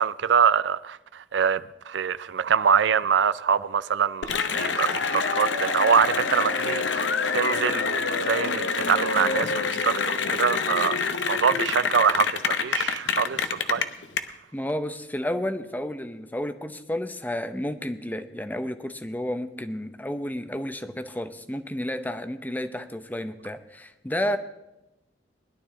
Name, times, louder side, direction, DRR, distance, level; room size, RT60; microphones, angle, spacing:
voice 1, 0.0-13.4 13.7-13.9, right 7 dB, 75° right, 0.4 m, -24 dB
Cheering / Applause, 4.2-14.2, left 5 dB, 85° left, 0.9 m, -26 dB
voice 2, 14.5-24.4, left 1 dB, 10° left, 0.7 m, -31 dB
20.0 x 11.5 x 3.8 m
head